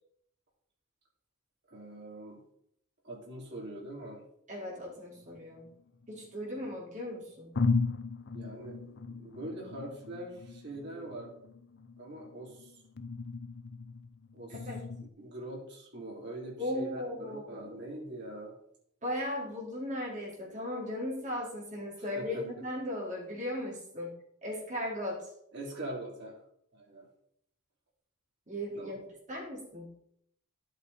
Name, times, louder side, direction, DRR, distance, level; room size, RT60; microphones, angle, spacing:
voice 1, 1.7-2.4 3.0-4.2 8.3-11.3 12.0-12.8 14.3-14.6 15.2-18.5 22.0-22.4 25.5-26.4 26.7-27.1 28.8-28.9, right 1 dB, 50° right, -2 dB, 3.5 m, -43 dB
voice 2, 4.5-5.7 6.1-7.5 14.5-14.8 16.6-18.0 19.0-24.2 24.4-25.3 28.5-29.0 29.3-29.9, left 1 dB, 35° right, -4 dB, 4.2 m, -37 dB
sound 1, 5.2-6.5 7.1-7.2 7.5-15.1, left 4 dB, 55° left, 0.6 m, -37 dB
11.5 x 8.3 x 4.2 m, 0.72 s
head